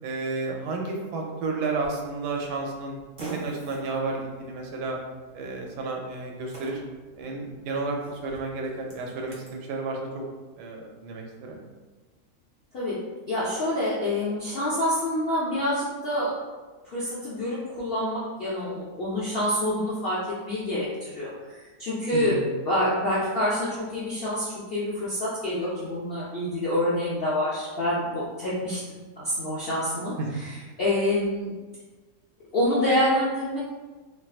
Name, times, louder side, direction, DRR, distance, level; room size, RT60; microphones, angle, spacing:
voice 1, 0.0-3.0 3.3-5.0 5.3-6.8 7.2-10.2 10.6-11.6 22.1-22.5 30.2-30.3, right 3 dB, 90° right, 1 dB, 1.2 m, -32 dB
Fart, 1.8-9.6, right 3 dB, 45° right, 0.6 m, -45 dB
voice 2, 13.3-16.3 16.8-22.4 22.7-28.8 29.2-31.5 32.5-33.6, left 1 dB, 70° left, -8 dB, 0.5 m, -27 dB
3.3 x 2.5 x 2.3 m, 1.3 s
omnidirectional pair, 1.7 m